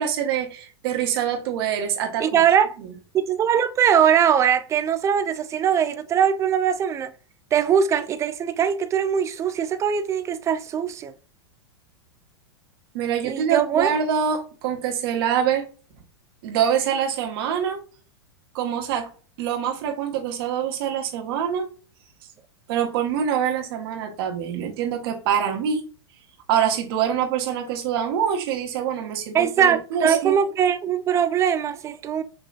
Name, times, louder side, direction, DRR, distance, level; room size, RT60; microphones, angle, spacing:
voice 1, 0.0-2.2 12.9-15.7 16.4-17.8 18.5-19.1 19.4-21.7 22.7-25.8 26.5-30.4, right 8 dB, 60° right, 1.3 m, -25 dB
voice 2, 2.2-2.8 3.1-7.1 7.5-11.1 13.2-13.9 29.3-32.2, right 8 dB, 20° right, 0.4 m, -21 dB
5.7 x 3.0 x 2.4 m
hypercardioid pair, 115°, 14 cm